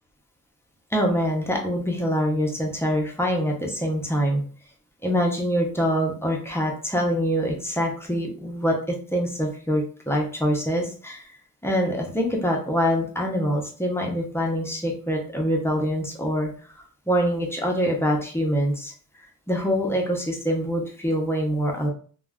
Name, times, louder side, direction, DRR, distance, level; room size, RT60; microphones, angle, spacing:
voice 1, 0.9-4.4 5.0-11.3 11.6-16.5 17.1-18.9 19.5-21.9, equal, 5° left, 0 dB, 0.5 m, -24 dB
2.3 x 2.1 x 3.4 m, 0.42 s
wide cardioid pair, 165°, 34 cm